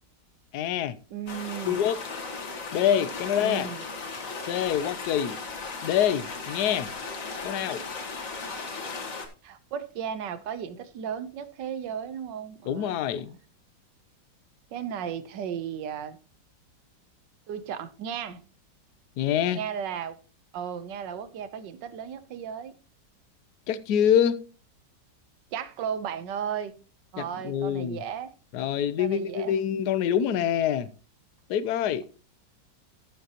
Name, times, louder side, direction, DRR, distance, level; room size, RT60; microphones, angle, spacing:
voice 1, 0.5-1.0 1.7-2.0 2.7-3.7 4.5-5.4 5.8-6.9 7.4-7.8 12.7-13.3 19.2-19.6 23.7-24.4 27.2-28.0 28.5-30.9 31.5-32.0, left 9 dB, 70° left, 1.2 m, -25 dB
voice 2, 1.1-1.9 3.4-3.8 9.4-13.4 14.7-16.2 17.5-18.4 19.5-20.2 20.5-22.7 25.5-26.7 27.1-28.3 29.0-29.6, right 8 dB, 75° right, 1.5 m, -35 dB
sound 1, 1.3-9.3, left 4 dB, 50° left, 1.9 m, -36 dB
13.5 x 7.5 x 2.9 m
omnidirectional pair, 2.0 m